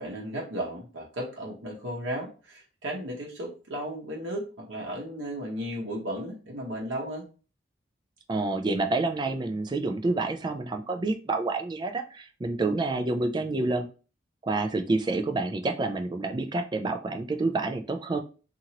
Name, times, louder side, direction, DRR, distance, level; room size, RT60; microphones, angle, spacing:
voice 1, 0.0-7.3, equal, 80° right, -3 dB, 0.8 m, -35 dB
voice 2, 8.3-13.9 14.4-18.2, right 2 dB, 25° right, 6 dB, 0.3 m, -28 dB
2.8 x 2.5 x 2.8 m, 0.35 s
head